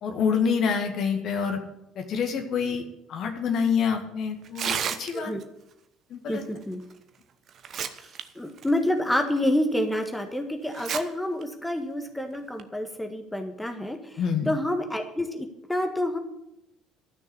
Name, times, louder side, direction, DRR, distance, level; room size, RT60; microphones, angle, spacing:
voice 1, 0.0-1.6 2.0-2.8 3.1-5.3 6.1-6.4 14.2-14.5, left 6 dB, 45° left, 4 dB, 2.0 m, -27 dB
Tearing, 4.4-5.4 6.9-7.0 7.5-8.2 8.6-8.7 9.4-9.5 10.7-11.0 11.4-11.5 12.3-12.6, right 8 dB, 45° right, 1.0 m, -31 dB
voice 2, 6.3-6.8 8.0-8.1 8.4-16.2, left 1 dB, 10° left, 5 dB, 1.6 m, -28 dB
13.0 x 6.5 x 9.5 m, 0.87 s
figure-of-eight pair, 55°, 0 cm